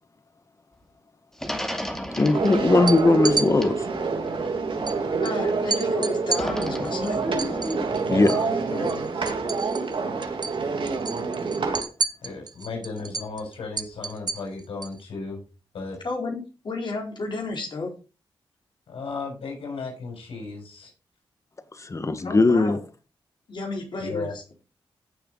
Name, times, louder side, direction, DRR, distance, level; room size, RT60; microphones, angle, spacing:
sound 1, 1.4-5.5 6.3-8.0, equal, 5° left, 2.4 m, -35 dB
voice 1, 2.2-3.9 8.1-8.4 21.8-22.8, left 3 dB, 35° left, 1.6 m, -20 dB
sound 2, 2.3-11.8, right 4 dB, 65° right, 3.2 m, -27 dB
sound 3, 2.7-3.5 4.9-5.0 5.2-5.4 5.7-8.5 8.8-10.0 10.2-10.6 10.9-15.0, right 4 dB, 50° right, 1.0 m, -31 dB
voice 2, 5.2-7.2 16.0-17.9 22.2-22.8 23.5-24.4, left 3 dB, 55° left, 4.4 m, -32 dB
voice 3, 8.0-9.3 12.2-15.4 15.7-16.0 18.9-20.9 24.0-24.3, left 4 dB, 85° left, 6.6 m, -35 dB
15.0 x 6.9 x 4.0 m
cardioid pair, 80°, 9 cm